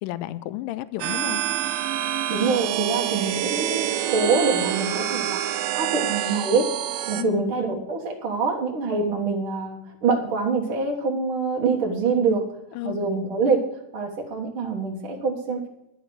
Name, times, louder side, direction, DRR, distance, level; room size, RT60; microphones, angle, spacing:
voice 1, 0.0-1.4 7.2-7.6 12.8-13.0, left 15 dB, 80° left, 14 dB, 2.1 m, -32 dB
sound 1, 1.0-7.2, right 12 dB, 85° right, 2.4 m, -26 dB
voice 2, 2.3-6.7 7.1-12.4 12.8-13.7 13.9-15.7, right 4 dB, 55° right, -1 dB, 1.6 m, -25 dB
11.0 x 6.6 x 7.6 m, 0.84 s
omnidirectional pair, 4.1 m